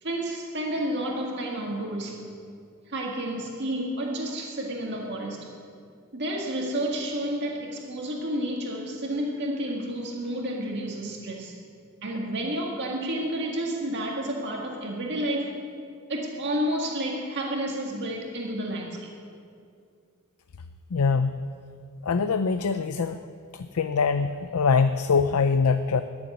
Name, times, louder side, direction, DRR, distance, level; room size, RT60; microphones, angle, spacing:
voice 1, 0.0-2.2 2.9-5.5 6.1-11.5 12.0-15.6 16.1-19.1, right 1 dB, 55° right, -1 dB, 1.8 m, -30 dB
voice 2, 20.9-21.4 22.0-23.2 23.5-26.0, left 5 dB, 90° left, 10 dB, 0.5 m, -23 dB
14.0 x 7.2 x 9.9 m, 2.3 s
head